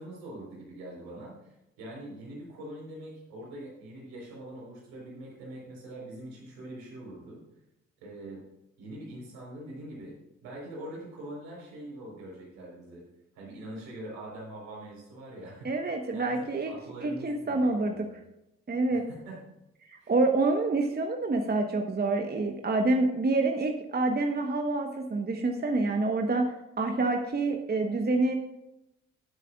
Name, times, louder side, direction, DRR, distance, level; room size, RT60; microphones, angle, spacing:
voice 1, 0.0-7.4 8.0-8.4 8.8-10.2 10.4-13.0 13.3-18.2 18.9-19.4 20.0-20.1, right 1 dB, 70° right, -4 dB, 4.5 m, -43 dB
voice 2, 15.6-16.7 17.0-18.0 18.7-19.0 19.9-28.4, right 2 dB, 25° right, 3 dB, 1.2 m, -27 dB
18.5 x 8.2 x 2.5 m, 0.88 s
figure-of-eight pair, 40°, 36 cm